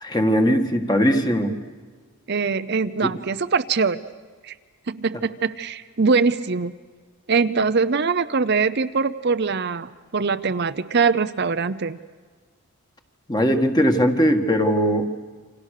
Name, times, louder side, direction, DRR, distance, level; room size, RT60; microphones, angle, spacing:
voice 1, 0.0-1.6 3.0-3.1 13.3-15.1, equal, 20° left, 5 dB, 1.7 m, -19 dB
voice 2, 2.3-4.0 4.4-4.5 4.9-6.7 7.3-12.0, right 4 dB, 50° right, 11 dB, 0.7 m, -22 dB
29.0 x 26.0 x 6.6 m, 1.5 s
head